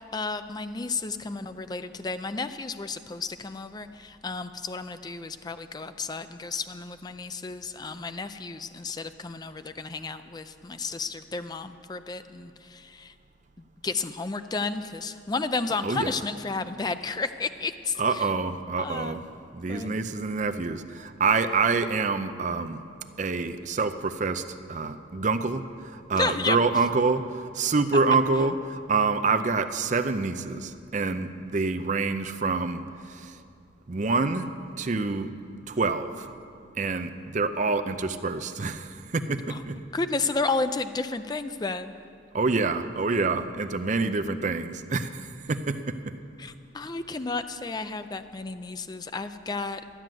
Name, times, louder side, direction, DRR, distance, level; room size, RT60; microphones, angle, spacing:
voice 1, 0.0-13.1 13.8-18.3 18.8-19.2 19.7-19.9 26.1-26.6 39.5-39.6 39.9-41.9 46.4-49.8, left 4 dB, 20° left, 10 dB, 0.4 m, -32 dB
voice 2, 18.0-19.2 19.5-22.8 23.2-24.4 24.7-32.8 33.1-33.3 33.9-34.5 34.8-35.3 35.7-36.3 36.8-39.8 42.3-46.1, right 4 dB, 40° right, 9 dB, 0.5 m, -27 dB
12.5 x 9.2 x 7.6 m, 2.4 s
head